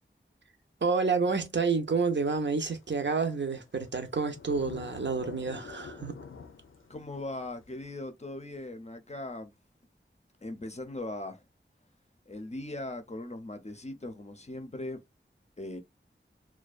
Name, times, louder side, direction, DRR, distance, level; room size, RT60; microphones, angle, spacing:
voice 1, 0.8-6.2, right 4 dB, 65° right, 0.6 m, -29 dB
sound 1, 2.1-2.2 2.7-7.9, left 5 dB, 85° left, 0.5 m, -48 dB
voice 2, 6.9-9.5 10.4-11.4 12.3-15.0 15.6-15.8, left 2 dB, 35° left, 0.5 m, -39 dB
2.4 x 2.2 x 2.3 m
wide cardioid pair, 40°, 21 cm